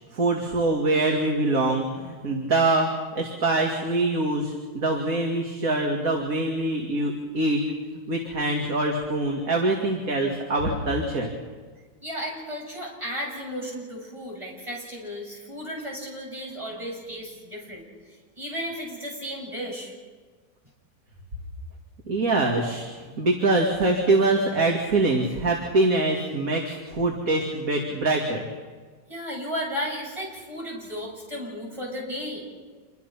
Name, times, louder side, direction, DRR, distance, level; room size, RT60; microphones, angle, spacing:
voice 1, 0.1-2.9 3.2-7.6 8.1-11.3 22.1-28.5, right 2 dB, 45° right, 0 dB, 2.8 m, -24 dB
voice 2, 12.0-19.9 29.1-32.5, equal, 15° right, -2 dB, 7.4 m, -34 dB
27.5 x 23.0 x 5.8 m, 1.5 s
omnidirectional pair, 2.1 m